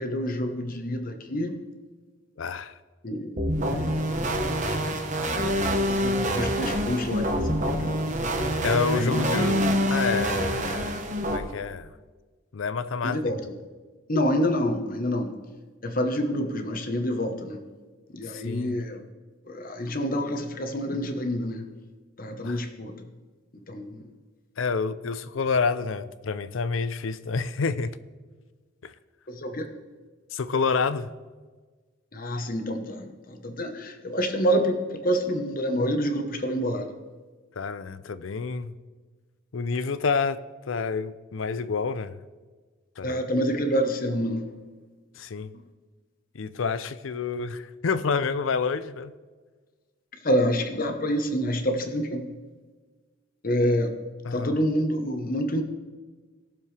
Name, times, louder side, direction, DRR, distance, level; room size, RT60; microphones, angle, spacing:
voice 1, 0.0-1.6 3.0-3.4 3.7-4.3 4.9-5.0 5.5-8.0 8.9-9.2 13.0-13.5 14.1-15.4 15.8-17.6 18.1-19.0 19.5-21.7 22.2-22.9 23.7-24.0 29.3-29.7 32.1-36.9 43.0-44.5 50.2-52.3 53.4-53.9 54.3-55.6, equal, 45° left, 1.1 m, -27 dB
voice 2, 2.4-2.8 8.6-11.0 11.3-11.9 12.5-13.4 18.3-18.8 22.4-22.6 24.6-28.0 28.8-28.9 30.3-31.1 37.6-38.8 39.5-40.4 40.7-42.2 43.0-43.2 45.2-45.5 46.3-49.1 54.2-54.6, left 5 dB, 75° left, 0.5 m, -28 dB
sound 1, 3.4-11.4, equal, 40° right, 1.1 m, -26 dB
19.0 x 7.0 x 3.3 m
head